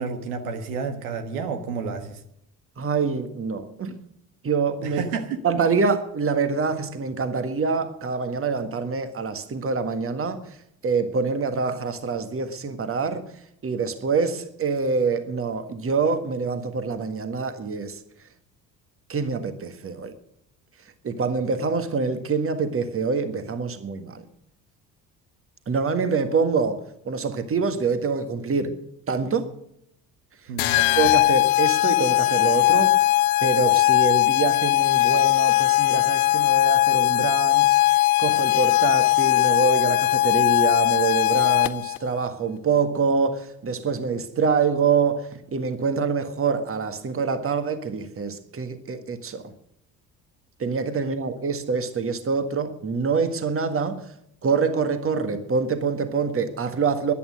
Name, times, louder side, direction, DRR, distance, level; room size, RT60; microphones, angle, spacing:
voice 1, 0.0-2.2 4.8-5.4 30.5-30.8, right 5 dB, 65° right, 7 dB, 1.4 m, -30 dB
voice 2, 2.8-3.9 4.4-5.0 5.4-10.4 10.8-13.2 13.6-18.0 19.1-20.1 21.0-24.2 25.7-26.8 27.0-28.7 29.1-29.5 31.0-33.1 33.4-37.8 38.2-49.5 50.6-54.0 54.4-57.1, right 5 dB, 25° right, 9 dB, 1.6 m, -25 dB
sound 1, 30.6-42.0, left 18 dB, 60° left, 0.6 m, -20 dB
14.5 x 11.0 x 6.3 m, 0.74 s
figure-of-eight pair, 55°, 48 cm